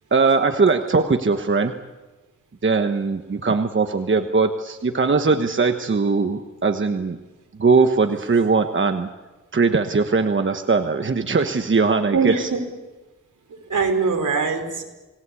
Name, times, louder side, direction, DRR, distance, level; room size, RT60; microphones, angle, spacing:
voice 1, 0.1-1.7 2.6-7.2 7.6-9.1 9.5-12.5, right 4 dB, 40° right, 7 dB, 1.2 m, -20 dB
voice 2, 12.1-12.6 13.7-14.8, right 5 dB, 75° right, 4 dB, 4.6 m, -22 dB
28.0 x 19.0 x 8.4 m, 1.2 s
wide cardioid pair, 105°, 31 cm